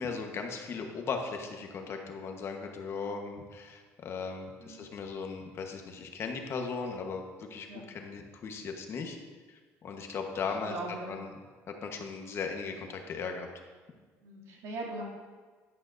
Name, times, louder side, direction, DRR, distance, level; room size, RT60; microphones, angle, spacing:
voice 1, 0.0-9.2 9.5-10.7 11.1-11.3 11.8-13.5, left 5 dB, 50° left, 3 dB, 1.2 m, -37 dB
voice 2, 10.6-11.2 14.2-15.0, right 2 dB, 80° right, -3 dB, 2.6 m, -40 dB
11.0 x 10.5 x 2.6 m, 1.5 s
cardioid pair, 120°, 6 cm